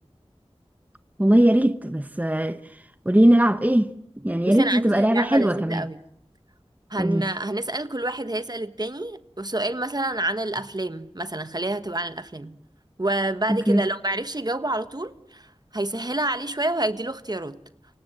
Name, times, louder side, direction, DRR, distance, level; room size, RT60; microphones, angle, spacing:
voice 1, 1.2-2.6 3.0-3.9 4.2-5.8 7.0-7.2 13.7-13.8, right 1 dB, 15° right, 1.1 m, -19 dB
voice 2, 4.4-6.0 6.9-12.6 13.0-15.5 15.7-17.6, right 1 dB, 40° right, 1.3 m, -28 dB
28.5 x 24.5 x 7.9 m
wide cardioid pair, 45°, 11 cm